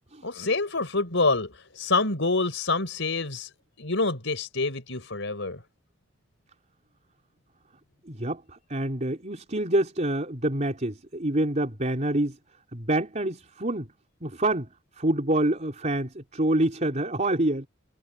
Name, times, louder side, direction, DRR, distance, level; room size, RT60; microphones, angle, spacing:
voice 1, 0.2-3.5 3.8-5.6, left 3 dB, 70° left, 5.1 m, -27 dB
voice 2, 8.1-12.4 12.7-13.9 14.2-17.7, right 1 dB, 40° right, 4.4 m, -27 dB
head